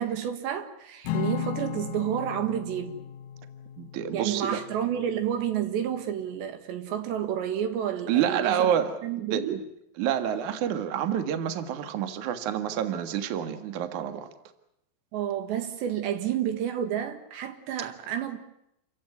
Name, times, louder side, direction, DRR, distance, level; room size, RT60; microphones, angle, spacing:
voice 1, 0.0-3.0 4.1-8.7 9.0-9.6 15.1-18.4, right 9 dB, 80° right, 3.9 m, -30 dB
Acoustic guitar / Strum, 1.0-5.5, left 10 dB, 65° left, 2.3 m, -36 dB
voice 2, 3.8-4.6 8.1-9.0 9.3-9.6 10.0-14.3, right 9 dB, 55° right, 2.5 m, -28 dB
28.0 x 16.0 x 9.6 m
omnidirectional pair, 5.1 m